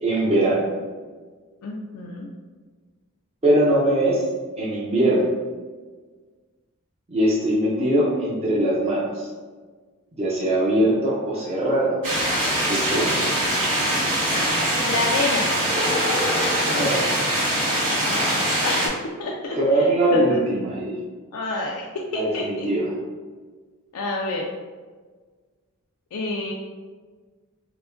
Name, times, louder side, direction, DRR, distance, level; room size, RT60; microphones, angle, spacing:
voice 1, 0.0-0.7 3.4-4.2 4.6-5.3 7.1-9.3 10.1-12.0 12.6-13.2 16.7-17.1 19.5-21.0 22.1-22.9, right 1 dB, 30° right, -6 dB, 0.6 m, -21 dB
voice 2, 1.6-2.3 14.5-15.5 18.0-18.9 19.2-20.4 21.3-21.9 22.1-22.7 23.9-24.5 26.1-26.5, left 2 dB, 80° left, -1 dB, 0.4 m, -28 dB
sound 1, 12.0-18.9, right 1 dB, 80° right, 1.3 m, -22 dB
4.6 x 2.1 x 2.5 m, 1.5 s
head